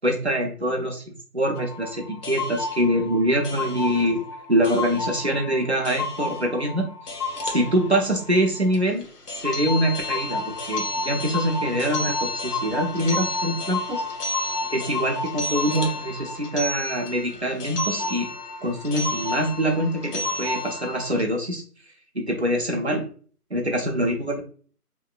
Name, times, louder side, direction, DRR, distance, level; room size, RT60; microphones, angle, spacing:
voice 1, 0.0-1.0 1.3-6.9 7.4-9.1 9.4-14.0 14.7-18.3 18.6-21.6 22.1-23.0 23.5-24.4, equal, 45° right, 1 dB, 0.5 m, -24 dB
sound 1, 1.6-21.2, left 2 dB, 80° left, 0.8 m, -31 dB
2.9 x 2.6 x 2.3 m, 0.42 s
figure-of-eight pair, 175°, 46 cm